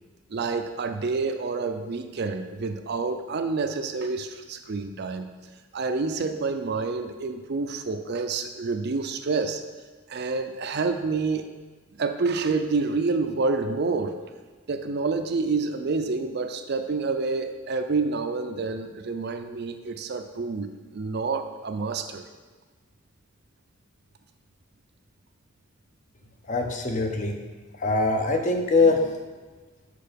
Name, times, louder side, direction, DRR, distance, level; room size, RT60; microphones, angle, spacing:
voice 1, 0.3-5.3 5.7-9.6 10.1-11.5 12.0-14.2 14.7-22.2, right 4 dB, 50° right, 7 dB, 0.5 m, -28 dB
voice 2, 26.5-27.3 27.8-29.1, left 3 dB, 35° left, 4 dB, 0.7 m, -22 dB
6.6 x 4.8 x 5.1 m, 1.3 s
head